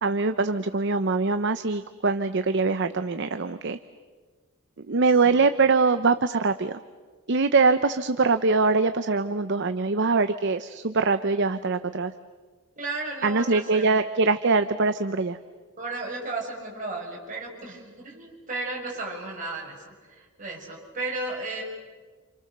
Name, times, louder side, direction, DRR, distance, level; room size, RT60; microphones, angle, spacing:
voice 1, 0.0-3.8 4.9-6.8 7.3-12.1 13.2-15.4, right 4 dB, 55° right, 10 dB, 0.8 m, -23 dB
voice 2, 12.8-14.0 15.8-21.6, right 2 dB, 35° right, -2 dB, 6.7 m, -34 dB
29.0 x 28.0 x 6.7 m, 1.4 s
head